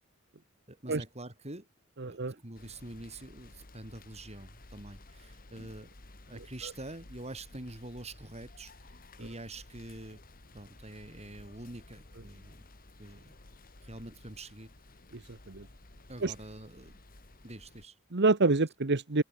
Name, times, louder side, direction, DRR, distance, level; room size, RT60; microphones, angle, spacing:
voice 1, 0.7-1.7 2.0-5.9 6.3-8.7 9.2-10.2 10.5-12.7 13.0-13.3 13.8-14.7 16.1-17.0 17.4-18.0, right 2 dB, 30° right, 4.7 m, -45 dB
voice 2, 2.0-2.4 6.6-6.7 15.1-15.7 16.2-16.3 18.1-19.2, right 3 dB, 55° right, 1.1 m, -27 dB
sound 1, 2.5-17.8, left 2 dB, 45° left, 2.5 m, -54 dB
head